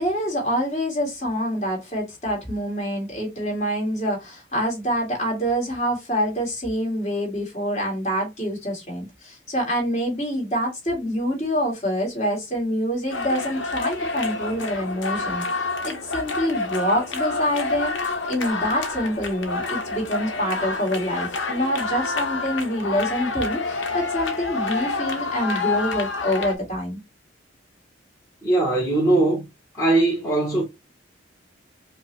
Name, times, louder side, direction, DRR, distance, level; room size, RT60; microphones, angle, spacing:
voice 1, 0.0-27.0, equal, 35° left, 1.8 m, -26 dB
sound 1, 13.1-26.5, left 3 dB, 70° left, 0.9 m, -28 dB
voice 2, 28.4-29.5 29.7-30.6, right 2 dB, 15° left, 1.1 m, -20 dB
5.1 x 2.1 x 3.0 m
head